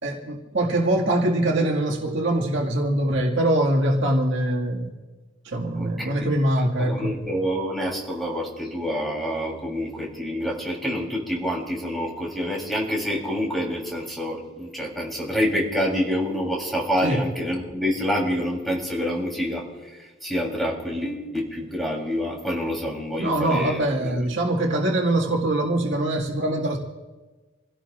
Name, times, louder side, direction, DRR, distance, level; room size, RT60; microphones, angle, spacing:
voice 1, 0.0-5.0 5.4-7.2 17.0-17.2 23.2-26.8, right 1 dB, 65° right, -1 dB, 1.9 m, -23 dB
voice 2, 5.8-6.1 6.8-24.2, equal, ahead, -2 dB, 3.5 m, -27 dB
27.5 x 16.5 x 2.5 m, 1.3 s
head